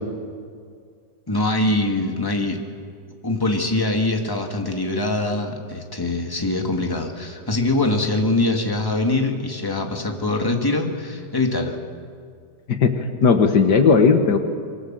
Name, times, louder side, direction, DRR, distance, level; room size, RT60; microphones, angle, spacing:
voice 1, 1.3-2.6 3.2-11.8, left 2 dB, 10° left, 2 dB, 2.3 m, -23 dB
voice 2, 12.7-14.4, left 5 dB, 70° left, 7 dB, 2.0 m, -16 dB
25.0 x 23.5 x 7.7 m, 2.2 s
omnidirectional pair, 1.8 m